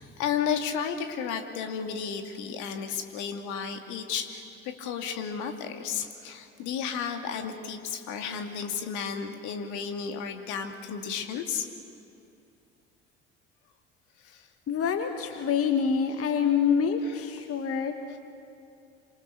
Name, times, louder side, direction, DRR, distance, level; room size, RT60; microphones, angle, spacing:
voice 1, 0.0-11.7 14.2-14.5 15.3-15.5 17.0-17.2 18.1-18.2, left 7 dB, 65° left, 5 dB, 2.4 m, -33 dB
voice 2, 14.7-17.9, left 6 dB, 45° left, 6 dB, 1.7 m, -26 dB
28.5 x 26.0 x 6.9 m, 2.6 s
figure-of-eight pair, 55°, 32 cm